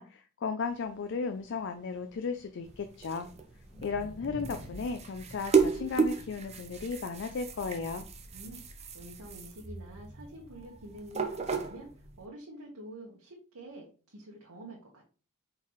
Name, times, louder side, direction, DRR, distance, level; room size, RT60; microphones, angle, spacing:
voice 1, 0.0-3.3 3.8-8.1, left 5 dB, 55° left, 8 dB, 0.4 m, -35 dB
sound 1, 0.7-8.6, right 1 dB, 5° right, 1.2 m, -51 dB
sound 2, 2.6-12.2, right 5 dB, 30° right, 0.5 m, -34 dB
voice 2, 8.3-15.1, right 1 dB, 85° right, -2 dB, 1.1 m, -47 dB
4.4 x 3.9 x 3.0 m, 0.37 s
head